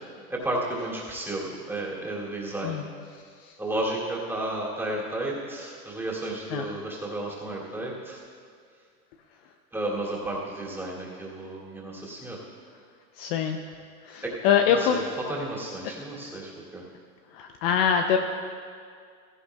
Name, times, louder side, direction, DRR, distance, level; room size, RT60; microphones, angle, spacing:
voice 1, 0.3-2.8 3.6-8.2 9.7-12.4 14.2-14.4 14.7-16.8, right 1 dB, 5° right, -6 dB, 2.6 m, -32 dB
voice 2, 13.2-13.6 14.1-15.0 17.4-18.2, left 8 dB, 45° left, 5 dB, 0.7 m, -23 dB
16.5 x 14.0 x 2.3 m, 2.2 s
hypercardioid pair, 130°, 44 cm